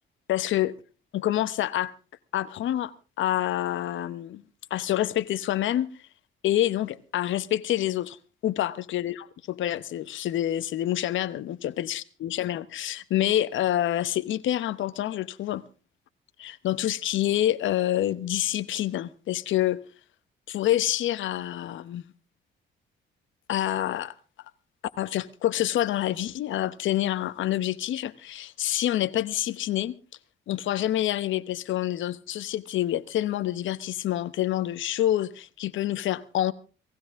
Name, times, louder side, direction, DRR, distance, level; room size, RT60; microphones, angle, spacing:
voice 1, 0.3-0.7 1.1-1.9 2.3-4.4 4.7-5.9 6.4-8.2 8.4-15.6 16.4-19.8 20.5-22.0 23.5-24.1 25.0-30.0 30.5-36.5, left 13 dB, 75° left, 1.0 m, -27 dB
19.0 x 15.5 x 3.6 m
cardioid pair, 90°, 20 cm